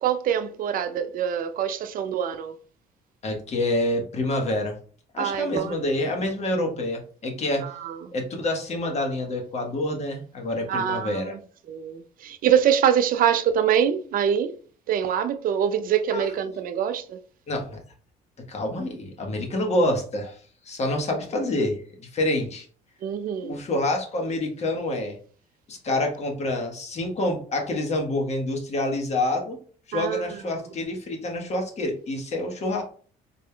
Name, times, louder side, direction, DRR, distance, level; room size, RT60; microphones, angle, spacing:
voice 1, 0.0-2.5 5.2-5.8 7.6-8.1 10.7-11.4 11.7-14.6 14.9-17.2 23.0-23.6 29.9-30.4, right 9 dB, 55° right, 0.5 m, -24 dB
voice 2, 3.2-4.8 5.1-7.7 8.1-11.3 16.1-16.3 17.5-17.8 18.5-20.4 20.6-22.7 23.4-25.2 25.7-29.6 29.9-32.8, left 1 dB, 40° left, 1.2 m, -27 dB
4.0 x 3.4 x 2.3 m
cardioid pair, 110°, 17 cm